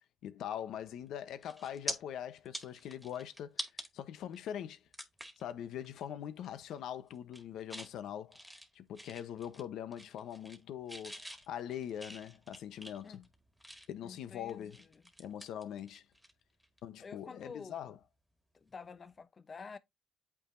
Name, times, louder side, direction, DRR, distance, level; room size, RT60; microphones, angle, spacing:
voice 1, 0.2-4.9 5.4-13.2 13.9-14.8 15.2-16.0 16.8-18.0, left 10 dB, 80° left, 0.9 m, -42 dB
sound 1, 0.9-1.1 1.4-2.0 2.4-3.9 4.3-4.4 4.9-5.4 5.8-6.0 6.4-6.8 7.1-7.9 8.3-9.7 9.9-10.6 10.9-14.0 14.5-16.3 16.6-16.8 18.7-18.8, equal, 5° right, 1.8 m, -45 dB
voice 2, 14.0-15.0 17.0-17.9 18.5-19.8, left 5 dB, 40° left, 0.8 m, -49 dB
8.6 x 4.7 x 2.6 m
cardioid pair, 90°, 0 cm